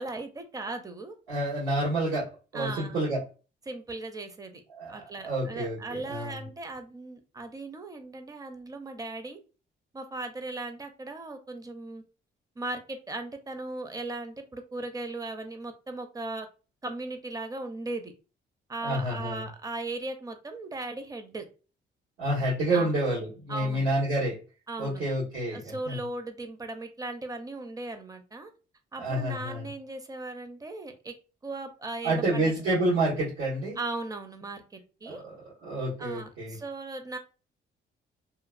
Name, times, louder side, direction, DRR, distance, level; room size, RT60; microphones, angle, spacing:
voice 1, 0.0-1.1 2.5-3.0 3.7-4.6 4.9-9.4 9.9-12.0 12.6-16.5 16.8-18.1 18.7-21.5 22.7-22.9 23.5-23.9 24.7-25.0 25.5-28.5 28.9-31.1 31.4-32.5 33.8-35.2 36.0-37.2, right 2 dB, 20° right, 7 dB, 0.5 m, -37 dB
voice 2, 1.3-3.2 4.7-5.0 5.2-6.4 18.8-19.4 22.2-24.3 24.8-26.0 29.0-29.6 32.0-33.8 35.0-35.3 35.6-36.5, right 1 dB, 90° right, -10 dB, 1.5 m, -28 dB
3.0 x 2.3 x 2.4 m, 0.34 s
cardioid pair, 90°, 20 cm